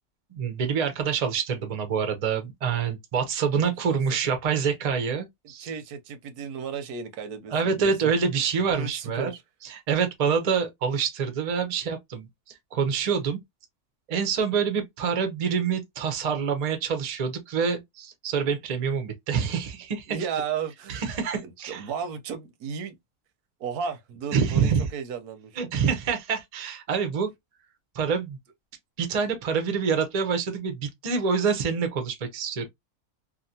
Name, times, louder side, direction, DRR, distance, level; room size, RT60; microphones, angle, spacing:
voice 1, 0.3-5.7 7.5-9.3 9.6-13.4 14.1-20.2 20.9-21.9 24.3-24.9 25.6-27.3 27.9-28.4 29.0-32.7, right 6 dB, 45° right, 0.5 m, -26 dB
voice 2, 3.9-4.3 5.6-7.9 8.7-9.4 20.1-21.0 21.4-23.0 23.6-25.7, right 6 dB, 85° right, 1.2 m, -34 dB
2.8 x 2.4 x 2.6 m
omnidirectional pair, 1.6 m